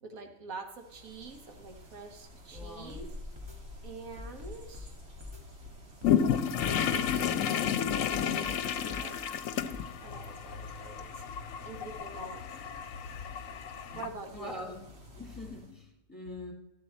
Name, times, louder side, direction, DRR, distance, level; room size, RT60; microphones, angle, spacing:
voice 1, 0.0-3.1 3.8-5.0 6.6-9.6 10.0-11.2 11.6-12.5 13.9-14.7, right 3 dB, 90° right, 5 dB, 1.7 m, -46 dB
sound 1, 0.6-15.7, left 1 dB, 50° right, 2.0 m, -51 dB
voice 2, 2.5-3.0 13.9-14.0 14.3-14.9 15.2-16.5, left 1 dB, 15° left, -1 dB, 2.4 m, -43 dB
sound 2, 2.6-3.1 3.4-3.6 4.2-4.9 5.2-5.4 6.0-6.7 7.1-7.3 7.9-8.6 8.9-9.1 9.7-9.9, left 3 dB, 20° right, 1.5 m, -44 dB
sound 3, 6.0-14.1, left 8 dB, 75° left, 1.0 m, -31 dB
13.0 x 8.4 x 4.2 m, 0.96 s
omnidirectional pair, 1.4 m